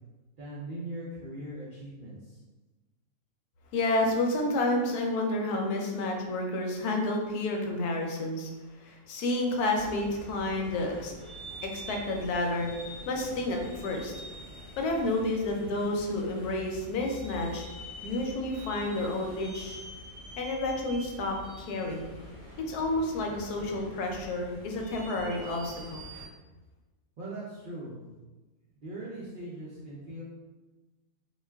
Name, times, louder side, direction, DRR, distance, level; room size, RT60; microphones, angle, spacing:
voice 1, 0.4-2.4 27.2-28.3 28.8-30.2, right 1 dB, 80° right, -6 dB, 0.4 m, -40 dB
voice 2, 3.7-8.5 8.8-11.1 11.6-12.7 13.1-14.1 14.8-17.6 18.0-19.8 20.4-22.1 22.7-26.0, left 2 dB, 85° left, 2 dB, 1.1 m, -30 dB
sound 1, 9.7-26.3, equal, 35° left, 0.7 m, -45 dB
2.5 x 2.3 x 3.3 m, 1.2 s
omnidirectional pair, 1.6 m